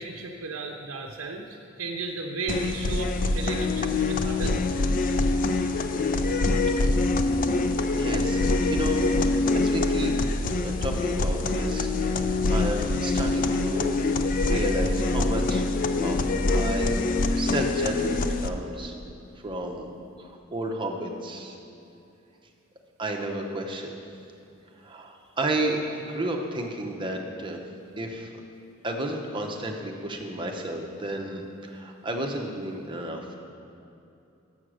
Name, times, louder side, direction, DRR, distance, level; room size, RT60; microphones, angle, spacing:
voice 1, 0.0-4.6, right 3 dB, 85° right, 3 dB, 0.6 m, -35 dB
sound 1, 2.5-18.5, left 2 dB, 40° left, 0.4 m, -25 dB
voice 2, 7.9-9.0 9.5-10.1 10.6-11.9 12.2-14.0 14.4-17.0 17.4-18.9 19.4-19.9 20.2-21.6 23.0-23.9 24.8-27.6 28.0-28.4 28.8-33.3, right 1 dB, 25° right, 1 dB, 0.8 m, -32 dB
7.1 x 6.3 x 6.2 m, 2.7 s
head